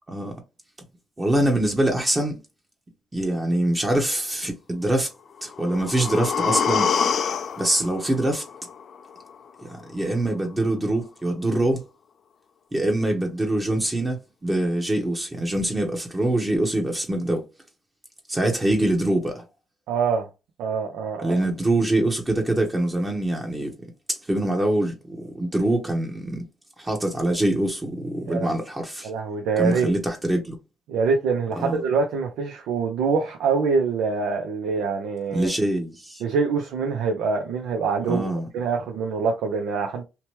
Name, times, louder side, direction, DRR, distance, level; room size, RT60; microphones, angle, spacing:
voice 1, 1.2-2.4 3.1-5.1 5.4-6.9 7.6-8.4 9.6-11.9 12.7-17.4 18.3-19.4 21.2-23.7 24.1-26.4 26.8-29.1 29.6-30.6 31.6-31.8 35.3-36.2 38.1-38.5, right 1 dB, 20° right, 0.8 m, -24 dB
sound 1, 5.4-9.4 9.7-9.8, left 6 dB, 55° left, 0.4 m, -26 dB
voice 2, 19.9-20.3 20.6-21.5 28.3-28.5 29.0-29.9 30.9-35.5 36.2-38.3 38.5-40.0, right 5 dB, 85° right, 0.6 m, -25 dB
2.9 x 2.2 x 3.0 m
cardioid pair, 90°, 0 cm